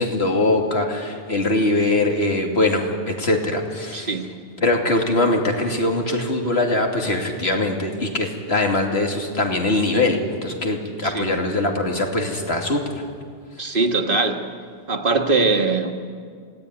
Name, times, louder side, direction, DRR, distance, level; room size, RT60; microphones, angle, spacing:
voice 1, 0.0-4.1 4.6-12.8, left 2 dB, 85° left, 2 dB, 2.9 m, -22 dB
voice 2, 3.9-4.3 11.0-11.3 13.6-14.4 14.9-15.9, right 3 dB, 55° right, 5 dB, 1.9 m, -21 dB
27.0 x 17.5 x 9.6 m, 2.1 s
omnidirectional pair, 1.0 m